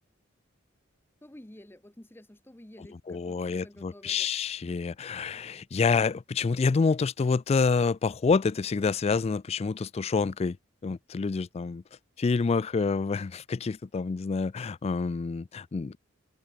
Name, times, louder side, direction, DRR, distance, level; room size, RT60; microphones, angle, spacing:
voice 1, 1.2-4.3, left 1 dB, 10° left, 0.8 m, -51 dB
voice 2, 3.1-10.6 10.8-11.8 12.2-16.0, left 4 dB, 30° left, 0.3 m, -27 dB
head